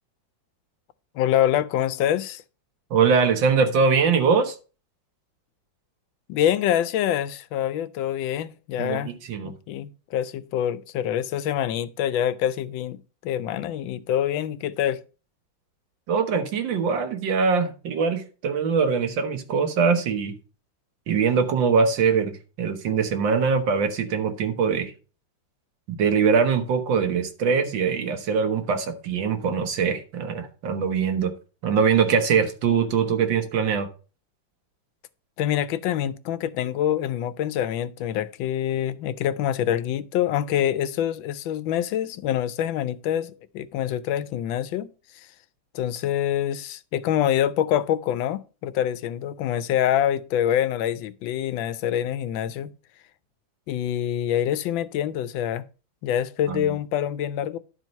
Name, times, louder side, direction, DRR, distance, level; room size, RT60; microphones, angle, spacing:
voice 1, 1.1-2.4 6.3-9.1 9.4-15.0 35.4-44.9 45.1-45.3 45.7-52.7 53.7-55.6 56.0-57.6, left 10 dB, 80° left, 1.3 m, -25 dB
voice 2, 2.9-4.6 8.8-9.6 16.1-20.3 21.1-24.9 25.9-31.3 31.6-33.9 56.5-56.8, right 6 dB, 75° right, 1.8 m, -22 dB
11.0 x 4.5 x 5.3 m
omnidirectional pair, 2.1 m